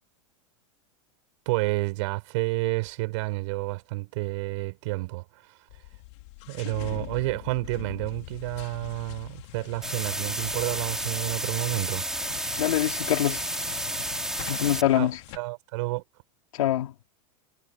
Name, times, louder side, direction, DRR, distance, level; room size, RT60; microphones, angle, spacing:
voice 1, 1.5-5.2 6.5-12.1 14.9-15.1 15.3-16.0, right 22 dB, 60° right, 5.8 m, -30 dB
sound 1, 5.7-15.4, left 20 dB, 60° left, 4.5 m, -43 dB
sound 2, 9.8-14.8, right 1 dB, 5° right, 4.2 m, -31 dB
voice 2, 12.6-13.4 14.5-15.2 16.5-16.9, left 13 dB, 85° left, 3.8 m, -24 dB
supercardioid pair, 145°, 17 cm